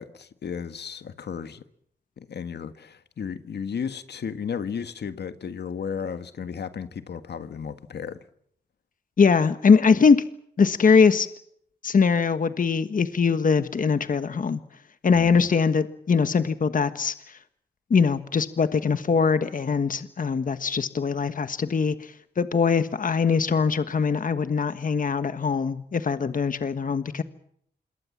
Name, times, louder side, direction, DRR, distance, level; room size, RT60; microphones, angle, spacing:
voice 1, 0.0-1.6 2.2-8.2 15.1-15.5, left 7 dB, 75° left, 1.7 m, -34 dB
voice 2, 9.2-10.2 10.6-11.3 11.8-14.6 15.0-17.4 17.9-27.2, left 5 dB, 50° left, 1.4 m, -22 dB
27.0 x 22.0 x 7.4 m
wide cardioid pair, 95°, 18 cm